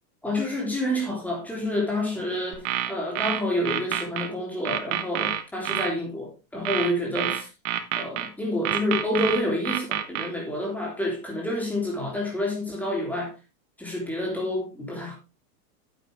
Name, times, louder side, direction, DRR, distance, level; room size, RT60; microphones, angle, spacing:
voice 1, 0.2-7.5 8.0-13.3 13.8-15.1, left 1 dB, 5° left, 3.3 m, -28 dB
sound 1, 2.5-4.3 4.6-5.9 6.6-8.3 8.6-10.3, right 12 dB, 50° right, 1.3 m, -27 dB
9.5 x 8.3 x 3.4 m
supercardioid pair, 155°, 49 cm